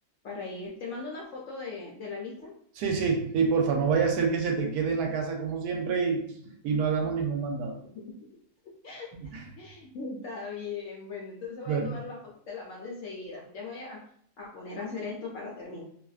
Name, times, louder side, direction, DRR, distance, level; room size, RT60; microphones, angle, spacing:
voice 1, 0.2-2.5 7.8-7.9 8.8-12.2 12.5-14.0 14.4-15.8, left 4 dB, 70° left, -3 dB, 0.7 m, -39 dB
voice 2, 2.8-6.2 6.6-7.8 9.3-9.4 11.7-11.9, right 5 dB, 80° right, 2 dB, 1.1 m, -27 dB
2.6 x 2.5 x 2.3 m, 0.64 s
omnidirectional pair, 1.7 m